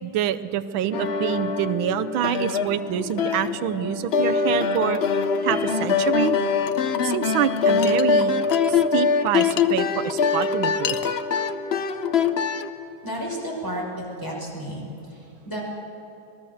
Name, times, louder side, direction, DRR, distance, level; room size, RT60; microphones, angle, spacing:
voice 1, 0.0-5.0 5.4-6.4 7.0-8.3 8.7-11.0, right 10 dB, 80° right, 11 dB, 1.6 m, -26 dB
sound 1, 0.9-12.7, left 5 dB, 60° left, 0.6 m, -24 dB
sound 2, 5.9-9.0, left 13 dB, 30° left, 1.8 m, -29 dB
sound 3, 6.7-6.9 7.8-8.7 9.0-9.7 10.2-11.1, left 10 dB, 85° left, 1.6 m, -32 dB
voice 2, 13.0-14.8 15.1-15.6, equal, 10° left, -3 dB, 5.7 m, -32 dB
26.5 x 19.0 x 7.2 m, 2.8 s
omnidirectional pair, 2.2 m